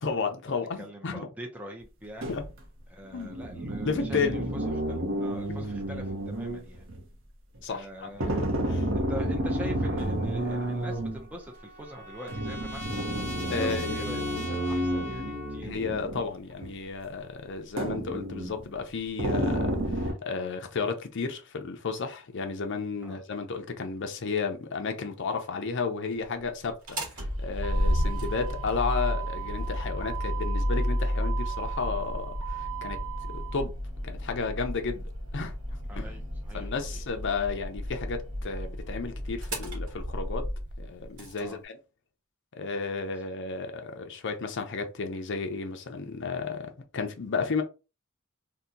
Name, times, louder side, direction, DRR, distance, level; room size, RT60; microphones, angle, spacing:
voice 1, 0.0-1.3 2.3-2.4 3.1-3.4 3.8-4.4 5.6-5.7 7.6-8.1 8.4-8.9 13.5-14.6 15.6-33.0 33.3-33.7 34.0-36.3 36.5-40.5 40.8-41.8 42.5-47.6, left 4 dB, 55° left, 0.6 m, -33 dB
voice 2, 0.8-2.3 2.9-4.4 4.9-6.8 7.7-8.5 8.9-12.9 13.6-15.8 23.0-23.2 35.9-37.0 41.4-41.6, equal, 5° right, 0.5 m, -43 dB
sound 1, 2.2-2.5 3.1-7.1 8.2-11.2 12.3-16.3 16.6-16.7 17.8-18.6 19.2-20.1, right 1 dB, 60° right, 0.8 m, -30 dB
Trumpet, 10.8-15.6, left 1 dB, 10° left, 1.3 m, -40 dB
Motor vehicle (road), 26.7-41.4, equal, 90° right, 1.4 m, -32 dB
2.8 x 2.2 x 3.7 m
head